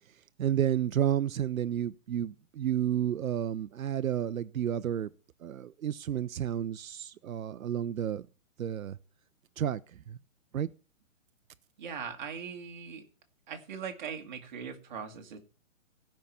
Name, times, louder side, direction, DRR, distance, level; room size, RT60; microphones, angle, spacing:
voice 1, 0.4-5.1 5.4-8.3 8.6-9.0 9.6-9.8 10.1-10.2 10.5-10.7, right 10 dB, 85° right, 0.7 m, -31 dB
voice 2, 11.8-13.0 13.5-15.4, right 6 dB, 35° right, 2.0 m, -40 dB
15.0 x 5.9 x 6.9 m
hypercardioid pair, 170°, 40 cm